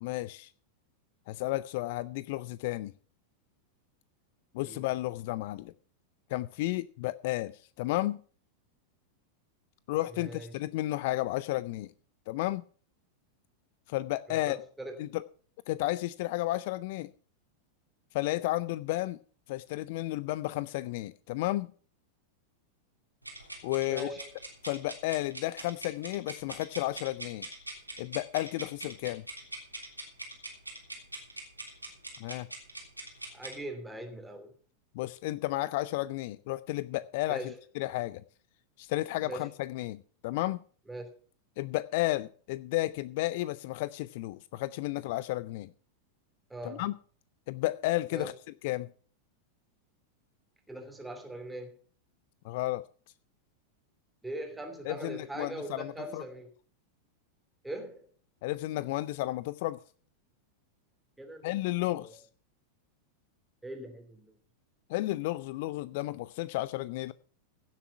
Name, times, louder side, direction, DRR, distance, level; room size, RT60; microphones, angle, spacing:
voice 1, 0.0-0.5 1.3-2.9 4.5-5.7 6.3-7.5 7.8-8.2 9.9-11.9 12.3-12.6 13.9-14.6 15.0-15.2 15.7-17.1 18.1-19.2 19.5-21.7 23.6-24.1 24.6-27.5 28.0-29.2 32.2-32.5 34.9-38.2 38.8-40.6 41.6-45.7 46.6-46.9 47.5-48.3 48.6-48.9 52.4-52.8 54.8-56.3 58.4-59.8 61.4-62.2 64.9-67.1, left 17 dB, 50° left, 0.5 m, -32 dB
voice 2, 10.1-10.6 14.3-15.0 23.9-24.4 33.3-34.5 37.3-37.6 39.2-39.5 40.9-41.1 46.5-46.8 48.1-48.3 50.7-51.7 54.2-56.5 57.6-58.1 61.2-61.4 62.0-62.1 63.6-64.3, right 1 dB, 5° right, 2.9 m, -41 dB
sound 1, 23.2-33.6, right 1 dB, 85° right, 3.3 m, -43 dB
16.0 x 7.4 x 5.8 m
figure-of-eight pair, 90°, 0 cm